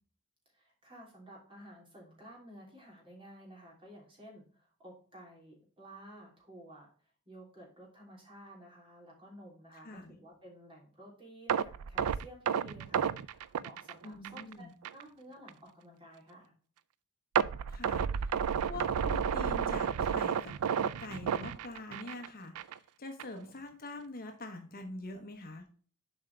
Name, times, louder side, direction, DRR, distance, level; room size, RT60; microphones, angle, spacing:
voice 1, 0.5-6.9 7.3-16.5, right 1 dB, 25° right, -2 dB, 3.0 m, -53 dB
voice 2, 9.7-10.2 14.0-14.7 17.7-25.6, left 2 dB, 45° left, 5 dB, 1.0 m, -45 dB
sound 1, 11.5-14.5 14.8-15.0 15.5-15.6 17.4-22.3 22.6-22.8 23.2-23.3, right 7 dB, 85° right, 0.4 m, -31 dB
7.3 x 5.0 x 3.3 m, 0.43 s
head